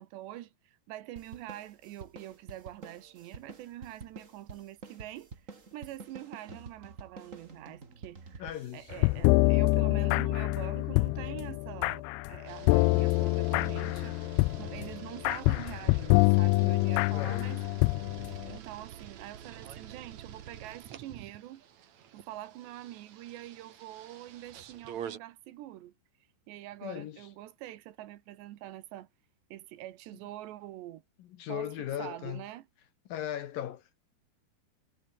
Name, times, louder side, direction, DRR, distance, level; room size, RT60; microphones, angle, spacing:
voice 1, 0.0-5.3 5.7-14.2 14.6-17.6 18.5-21.6 22.1-25.9 26.5-29.1 29.5-31.0 31.5-32.7, right 14 dB, 80° right, 3.5 m, -45 dB
sound 1, 1.2-10.0, right 4 dB, 30° right, 1.7 m, -49 dB
voice 2, 8.4-8.9 12.8-13.1 17.1-17.5 26.8-27.3 31.2-32.4 33.1-34.0, left 11 dB, 65° left, 2.5 m, -38 dB
sound 2, 8.9-18.6, left 24 dB, 85° left, 2.3 m, -26 dB
sound 3, 12.5-25.2, right 9 dB, 50° right, 2.5 m, -47 dB
omnidirectional pair, 5.0 m